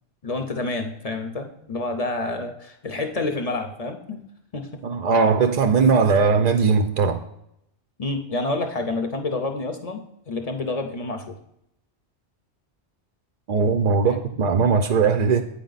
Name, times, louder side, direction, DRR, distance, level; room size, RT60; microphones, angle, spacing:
voice 1, 0.2-4.2 4.5-4.7 8.0-11.3 14.0-14.4, left 2 dB, 40° left, 5 dB, 0.6 m, -28 dB
voice 2, 4.8-7.2 13.5-15.4, right 5 dB, 65° right, 7 dB, 0.4 m, -19 dB
8.4 x 4.6 x 3.9 m, 0.77 s
omnidirectional pair, 1.2 m